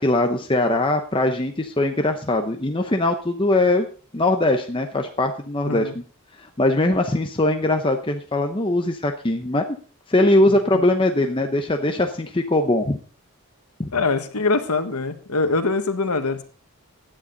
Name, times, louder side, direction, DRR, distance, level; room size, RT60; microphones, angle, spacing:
voice 1, 0.0-3.9 4.1-6.0 6.4-9.6 10.1-13.0 13.8-13.9, left 2 dB, 25° left, 4 dB, 0.8 m, -21 dB
voice 2, 13.9-16.4, left 3 dB, 90° left, 8 dB, 1.6 m, -23 dB
16.5 x 10.0 x 4.0 m, 0.41 s
head